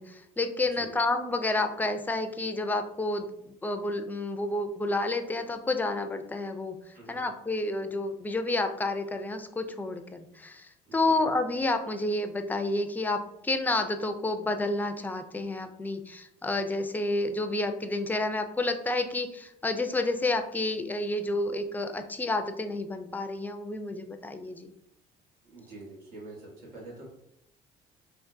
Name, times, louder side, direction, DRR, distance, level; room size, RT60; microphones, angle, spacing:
voice 1, 0.0-3.3 3.6-24.7, left 2 dB, 10° left, 7 dB, 0.4 m, -30 dB
voice 2, 10.9-11.2 25.4-27.0, right 2 dB, 85° right, -4 dB, 1.4 m, -46 dB
3.5 x 2.5 x 2.6 m, 0.79 s
supercardioid pair, 75°, 18 cm